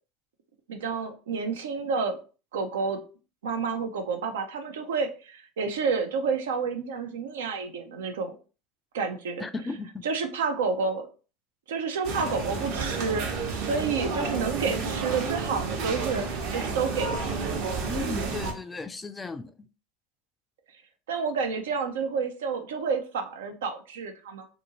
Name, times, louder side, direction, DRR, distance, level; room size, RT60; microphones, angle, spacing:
voice 1, 0.7-2.2 2.5-3.0 3.4-8.3 8.9-9.4 10.0-11.1 11.7-16.2 16.5-17.3 21.1-24.5, right 5 dB, 80° right, 0.5 m, -29 dB
voice 2, 9.4-10.0 17.9-19.5, left 3 dB, 20° left, 0.4 m, -35 dB
sound 1, 12.0-18.5, right 4 dB, 65° right, 1.0 m, -31 dB
2.7 x 2.6 x 2.8 m
hypercardioid pair, 90°, 0 cm